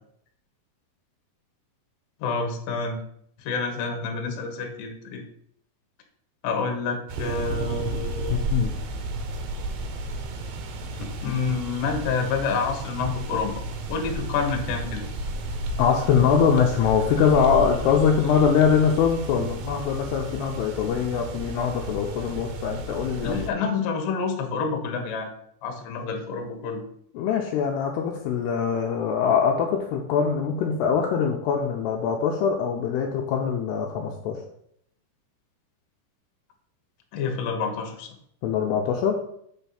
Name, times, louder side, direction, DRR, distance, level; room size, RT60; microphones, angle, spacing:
voice 1, 2.2-3.0 3.4-5.2 6.4-8.6 11.2-13.5 13.9-15.0 23.2-25.3 25.6-26.8 37.1-38.1, left 5 dB, 65° left, 3 dB, 2.5 m, -28 dB
sound 1, 7.1-23.5, right 2 dB, 70° right, 2.3 m, -33 dB
voice 2, 8.3-8.7 15.8-23.5 27.1-34.4 38.4-39.2, left 7 dB, 80° left, 1 dB, 2.6 m, -23 dB
8.3 x 4.5 x 5.6 m, 0.71 s
omnidirectional pair, 5.1 m